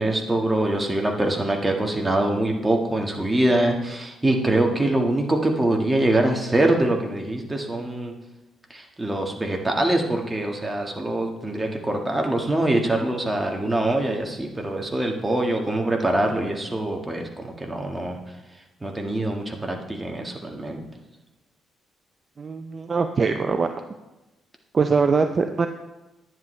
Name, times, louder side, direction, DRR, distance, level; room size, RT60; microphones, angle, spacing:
voice 1, 0.0-8.1 8.7-18.2 18.8-20.8, right 1 dB, 15° right, 1 dB, 1.6 m, -24 dB
voice 2, 22.4-23.7 24.7-25.7, right 5 dB, 40° right, 7 dB, 0.5 m, -22 dB
10.5 x 9.5 x 3.2 m, 1.0 s
cardioid pair, 90°, 0 cm